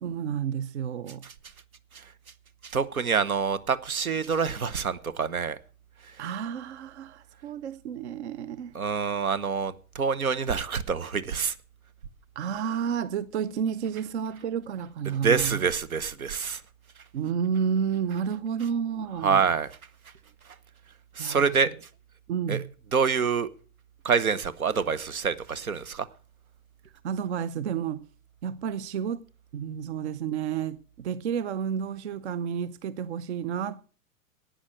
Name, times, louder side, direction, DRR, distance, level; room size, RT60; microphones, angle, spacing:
voice 1, 0.0-1.2 6.2-8.7 12.4-15.6 17.1-19.5 21.2-21.5 22.3-22.6 27.0-28.0 28.4-29.2 29.5-33.8, right 7 dB, 50° right, 0.7 m, -31 dB
voice 2, 2.6-5.6 6.0-6.2 8.7-11.5 15.1-16.6 19.2-19.7 21.1-21.7 22.5-22.6 22.9-23.5 24.0-26.1, right 6 dB, 75° right, 1.1 m, -26 dB
11.5 x 9.1 x 6.3 m
figure-of-eight pair, 110°, 42 cm